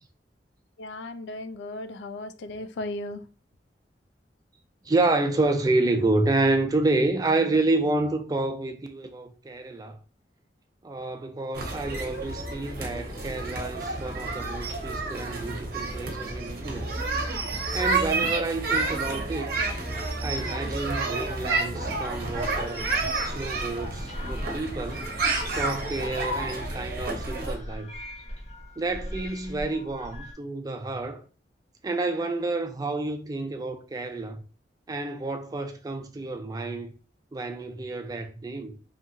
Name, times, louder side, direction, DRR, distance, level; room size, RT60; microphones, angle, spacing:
voice 1, 0.8-3.2, left 2 dB, 80° left, 0.3 m, -36 dB
voice 2, 4.9-10.0 10.8-16.9 17.7-19.6 20.2-22.9 23.2-25.1 25.5-27.9 28.8-31.2 31.8-34.4 34.9-36.9 37.3-38.8, right 2 dB, 20° right, 0.3 m, -29 dB
sound 1, 11.5-27.5, right 3 dB, 55° right, 0.7 m, -30 dB
sound 2, 22.2-30.3, equal, 40° left, 0.8 m, -40 dB
2.8 x 2.4 x 2.6 m
head